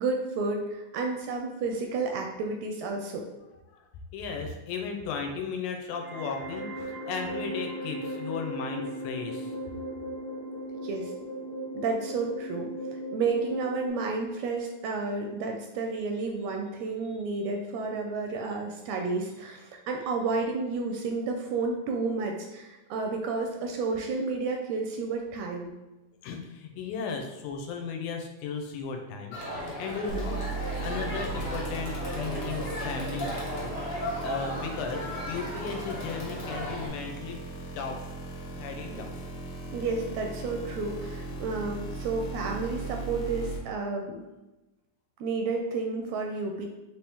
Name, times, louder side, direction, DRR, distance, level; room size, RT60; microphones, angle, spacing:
voice 1, 0.0-3.2 10.8-11.1 11.7-25.7 38.9-39.0 39.7-44.2 45.2-46.7, right 3 dB, 80° right, 2 dB, 1.6 m, -31 dB
voice 2, 4.1-9.5 26.2-30.4 30.8-37.4 37.8-38.0 38.5-39.1, left 5 dB, 90° left, 3 dB, 2.1 m, -36 dB
sound 1, 5.9-13.9, equal, 20° left, 0.7 m, -37 dB
Crowd, 29.3-36.9, equal, 55° left, 1.9 m, -36 dB
sound 2, 30.1-43.6, right 3 dB, 70° left, 1.3 m, -38 dB
5.2 x 3.0 x 3.5 m, 1.0 s
omnidirectional pair, 3.4 m